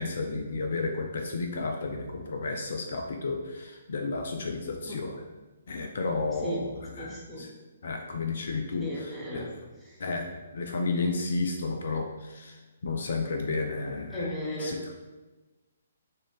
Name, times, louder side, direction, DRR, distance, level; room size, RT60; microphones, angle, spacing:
voice 1, 0.0-5.2 5.7-6.7 7.0-7.1 7.4-7.5 7.8-9.5 10.0-14.3 14.6-14.8, left 3 dB, 55° left, 3 dB, 0.4 m, -32 dB
voice 2, 6.4-6.7 7.0-7.5 8.8-9.5 9.8-10.0 14.1-14.9, equal, ahead, -6 dB, 1.0 m, -35 dB
6.1 x 2.5 x 3.4 m, 1.2 s
figure-of-eight pair, 130°, 0 cm